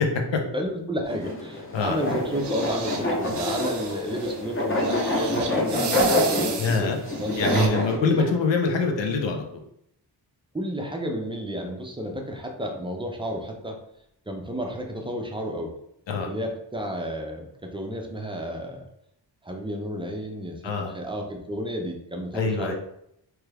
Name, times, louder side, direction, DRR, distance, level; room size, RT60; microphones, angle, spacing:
voice 1, 0.5-6.9 7.2-8.3 10.5-13.8 14.3-15.7 16.3-18.8 19.4-22.7, equal, 15° right, 1 dB, 0.3 m, -31 dB
sound 1, 1.1-8.0, left 1 dB, 30° left, 0.7 m, -26 dB
sound 2, 1.8-7.7, right 6 dB, 65° right, 0.6 m, -33 dB
voice 2, 6.6-7.0 7.4-9.6 16.1-16.3 20.6-20.9 22.3-22.7, left 4 dB, 75° left, 3 dB, 0.7 m, -25 dB
3.1 x 2.3 x 3.2 m, 0.76 s
wide cardioid pair, 115°, 45 cm